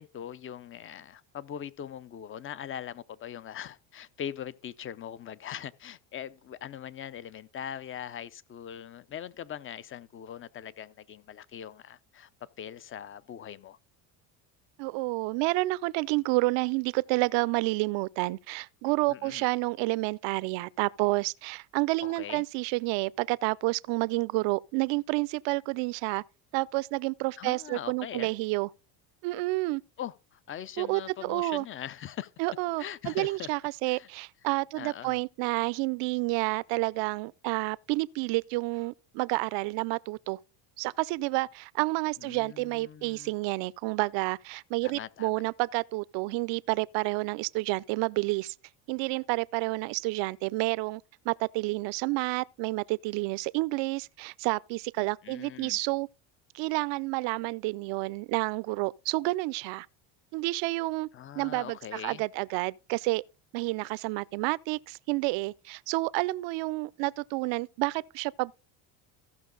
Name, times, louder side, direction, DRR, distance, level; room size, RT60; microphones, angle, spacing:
voice 1, 0.0-13.8 19.1-19.4 22.0-22.4 27.4-28.3 30.0-32.3 32.8-33.5 33.9-34.1 34.8-35.2 42.2-43.3 44.8-45.3 55.2-55.8 61.1-62.2, left 9 dB, 25° left, 0.5 m, -41 dB
voice 2, 14.8-26.2 26.5-28.7 29.2-29.8 30.8-31.7 32.4-40.4 40.8-48.5 48.9-56.1 56.5-59.9 60.3-61.1 61.4-63.2 63.5-68.5, right 23 dB, 60° right, 0.6 m, -29 dB
15.0 x 6.0 x 3.9 m
supercardioid pair, 110°, 49 cm